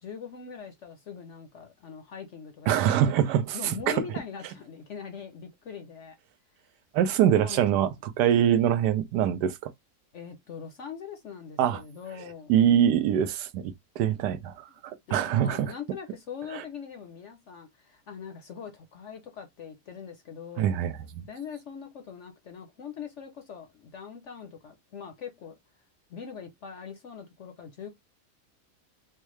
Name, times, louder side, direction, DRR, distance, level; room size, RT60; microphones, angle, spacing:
voice 1, 0.0-3.1 3.5-6.2 7.3-7.9 10.1-12.5 14.7-14.8 15.1-20.8 21.3-25.6 26.1-27.9, left 7 dB, 60° left, 0.8 m, -42 dB
voice 2, 2.7-4.0 6.9-9.7 11.6-11.8 12.5-15.7 16.5-16.6 20.6-21.2, right 10 dB, 80° right, 1.2 m, -24 dB
4.5 x 2.1 x 3.1 m
omnidirectional pair, 1.8 m